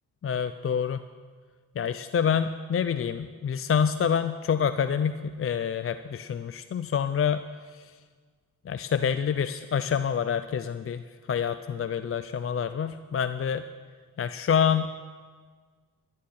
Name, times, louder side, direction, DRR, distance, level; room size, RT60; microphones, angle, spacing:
voice 1, 0.2-1.0 1.8-7.4 7.7-7.9 8.7-11.0 11.3-13.6 14.2-14.9, left 7 dB, 35° left, 11 dB, 0.5 m, -27 dB
16.0 x 11.5 x 4.3 m, 1.6 s
cardioid pair, 60°, 38 cm